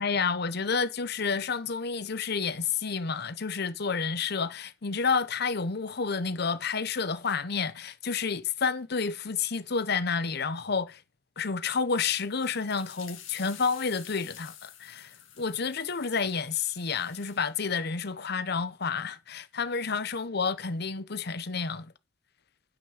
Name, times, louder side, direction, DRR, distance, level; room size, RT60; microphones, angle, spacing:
voice 1, 0.0-11.0 11.4-21.9, left 5 dB, 55° left, 0.9 m, -30 dB
sound 1, 12.1-17.5, left 10 dB, 80° left, 2.3 m, -50 dB
9.1 x 6.0 x 6.3 m
head